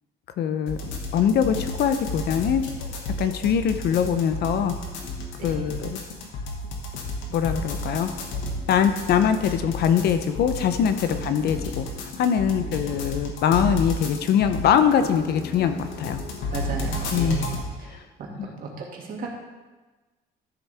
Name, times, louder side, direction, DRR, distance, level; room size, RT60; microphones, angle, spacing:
voice 1, 0.4-0.8 1.1-2.6 3.1-4.7 5.4-6.0 7.3-8.1 8.7-16.2 17.1-17.5 17.9-18.0 18.4-18.5, left 8 dB, 60° left, 9 dB, 0.8 m, -23 dB
sound 1, 0.7-17.7, left 1 dB, 90° left, 1.7 m, -32 dB
voice 2, 5.4-5.8 11.1-11.2 16.5-17.5 17.8-18.0 18.4-19.4, right 5 dB, 50° right, -1 dB, 2.3 m, -34 dB
13.0 x 7.1 x 3.5 m, 1.2 s
cardioid pair, 135°, 18 cm